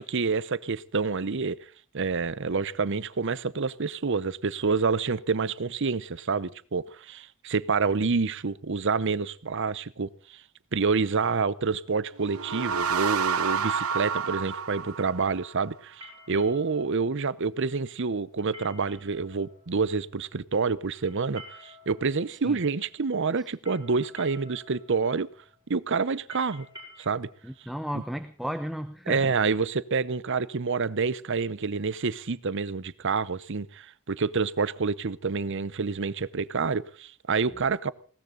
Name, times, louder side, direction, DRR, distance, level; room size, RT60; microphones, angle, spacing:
voice 1, 0.0-1.6 1.9-10.4 10.7-16.0 16.3-25.3 25.7-26.7 27.0-27.3 29.1-37.9, right 4 dB, 60° right, 0.8 m, -28 dB
sound 1, 11.6-28.7, left 2 dB, 15° right, 7.5 m, -53 dB
sound 2, 12.2-15.7, right 6 dB, 80° right, 1.1 m, -29 dB
voice 2, 27.4-29.3, equal, ahead, 0.8 m, -34 dB
20.5 x 18.0 x 3.9 m
head